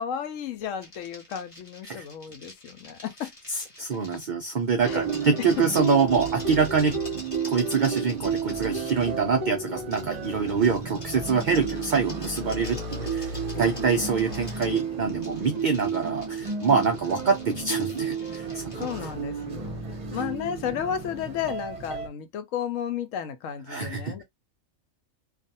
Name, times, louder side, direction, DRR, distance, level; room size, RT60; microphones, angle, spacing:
voice 1, 0.0-3.3 4.8-5.1 13.5-13.8 18.8-19.8 20.1-24.2, left 8 dB, 75° left, 0.9 m, -33 dB
sound 1, 0.8-4.3 4.7-9.1 9.9-19.1, left 1 dB, 25° left, 0.9 m, -46 dB
voice 2, 3.5-6.9 7.5-13.3 13.6-18.9 23.7-24.2, right 5 dB, 75° right, 0.4 m, -25 dB
sound 2, 4.8-22.1, right 5 dB, 40° right, 0.7 m, -32 dB
2.5 x 2.3 x 2.6 m
omnidirectional pair, 1.4 m